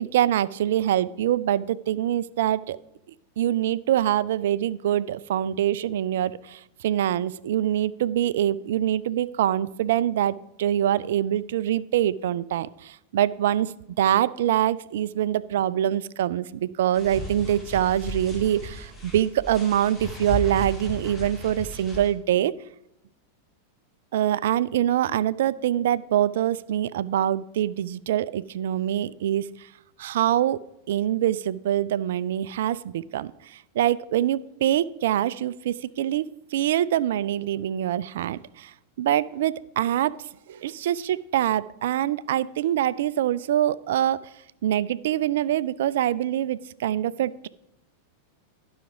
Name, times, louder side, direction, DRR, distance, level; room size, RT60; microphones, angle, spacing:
voice 1, 0.0-2.8 3.4-22.5 24.1-29.7 30.0-30.6 30.9-40.2 40.5-44.2 44.6-47.5, right 11 dB, 55° right, 19 dB, 0.3 m, -24 dB
sound 1, 16.9-22.1, equal, 15° left, 1.9 m, -35 dB
12.0 x 5.8 x 5.0 m, 0.83 s
figure-of-eight pair, 90°, 0 cm